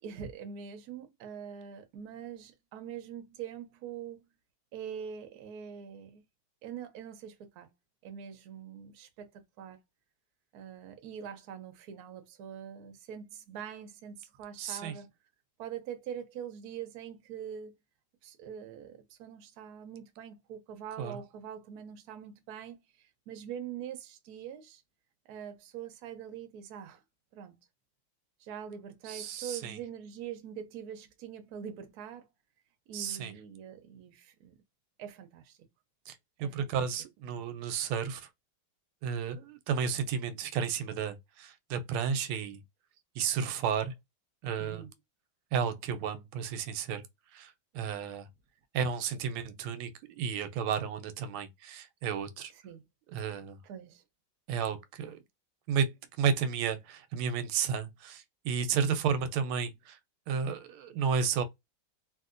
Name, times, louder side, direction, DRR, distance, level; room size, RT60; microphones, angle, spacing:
voice 1, 0.0-4.2 4.7-6.2 6.6-7.7 8.0-9.8 10.5-15.1 15.6-17.7 18.2-24.8 25.2-27.0 27.3-27.5 28.4-32.3 32.9-34.6 35.0-35.6 36.4-36.8 44.6-44.9 52.5-52.8 53.6-54.0 58.7-59.0, right 8 dB, 65° right, 1.0 m, -44 dB
voice 2, 14.6-14.9 21.0-21.2 29.1-29.8 32.9-33.3 36.1-38.3 39.0-42.6 43.2-43.9 44.4-44.8 45.5-47.0 47.3-48.3 48.7-49.9 50.2-52.5 53.1-53.6 54.5-55.2 55.7-60.0 60.3-61.4, right 7 dB, 90° right, 1.4 m, -32 dB
3.0 x 2.7 x 2.4 m
omnidirectional pair, 2.2 m